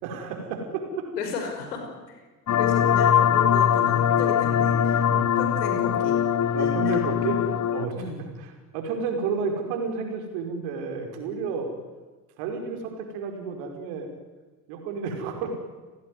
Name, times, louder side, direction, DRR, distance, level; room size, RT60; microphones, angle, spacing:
voice 1, 0.0-1.1 5.1-5.4 6.5-7.4 7.7-11.7 12.4-14.1 14.7-15.5, right 5 dB, 60° right, 4 dB, 5.5 m, -31 dB
voice 2, 1.2-1.8 2.1-2.2 2.6-5.1 5.3-6.2 6.6-7.0 7.9-8.2, left 5 dB, 70° left, 4 dB, 5.8 m, -34 dB
sound 1, 2.5-7.9, left 9 dB, 35° left, 1.3 m, -22 dB
29.0 x 19.5 x 9.8 m, 1.3 s
figure-of-eight pair, 55°, 49 cm